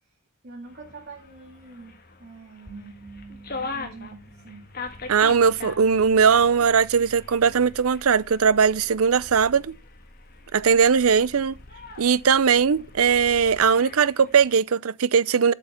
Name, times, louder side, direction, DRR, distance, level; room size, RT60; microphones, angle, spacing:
voice 1, 0.4-3.0 3.5-4.7, right 3 dB, 50° right, 2.8 m, -45 dB
sound 1, 0.6-14.5, left 3 dB, 45° left, 1.9 m, -42 dB
sound 2, 2.6-7.8, right 2 dB, 10° right, 2.1 m, -48 dB
sound 3, 4.9-13.8, left 1 dB, 80° left, 2.1 m, -50 dB
voice 2, 5.1-9.7 10.5-11.6 12.0-15.5, right 6 dB, 85° right, 0.6 m, -19 dB
8.0 x 7.5 x 7.1 m
head